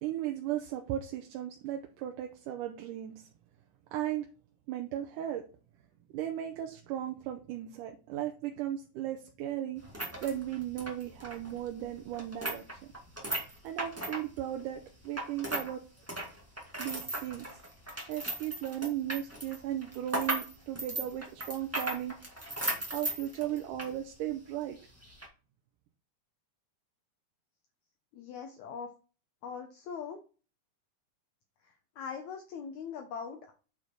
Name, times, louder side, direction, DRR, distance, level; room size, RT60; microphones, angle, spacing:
voice 1, 0.0-3.1 3.9-4.3 4.7-5.4 6.1-9.8 10.2-12.8 13.6-15.8 16.8-17.5 18.1-22.1 22.9-24.8, right 12 dB, 80° right, 3 dB, 2.3 m, -36 dB
sound 1, 9.8-15.7 16.0-23.9 24.3-24.4 25.0-25.3, right 1 dB, 10° right, 0.9 m, -37 dB
voice 2, 28.1-28.9 29.4-30.2 31.6-33.5, left 6 dB, 70° left, 4 dB, 2.1 m, -41 dB
8.5 x 4.7 x 4.5 m, 0.35 s
omnidirectional pair, 3.7 m